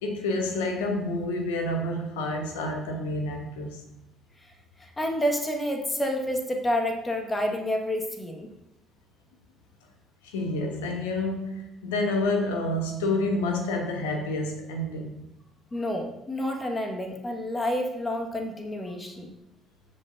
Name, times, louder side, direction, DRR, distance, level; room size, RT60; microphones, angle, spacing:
voice 1, 0.0-3.8 10.2-15.2, left 2 dB, 70° left, 4 dB, 1.2 m, -29 dB
voice 2, 4.8-8.5 15.7-19.3, left 1 dB, 20° left, 3 dB, 1.6 m, -29 dB
15.5 x 5.5 x 2.6 m, 0.86 s
figure-of-eight pair, 50°, 0 cm